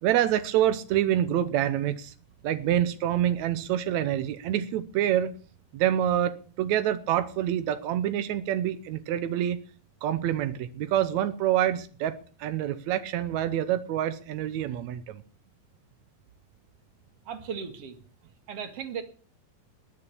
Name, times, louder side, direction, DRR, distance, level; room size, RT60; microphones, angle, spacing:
voice 1, 0.0-2.1 2.4-5.3 5.7-9.6 10.0-15.2, right 11 dB, 85° right, 12 dB, 1.6 m, -26 dB
voice 2, 17.3-18.0 18.5-19.0, right 7 dB, 45° right, 7 dB, 2.5 m, -36 dB
20.0 x 7.0 x 8.4 m, 0.42 s
omnidirectional pair, 4.4 m